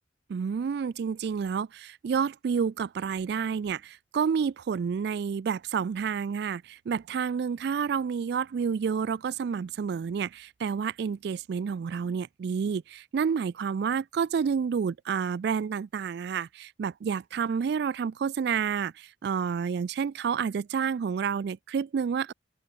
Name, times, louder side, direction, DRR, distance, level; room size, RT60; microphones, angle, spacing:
voice 1, 0.3-22.3, right 6 dB, 60° right, 0.3 m, -29 dB
open air
head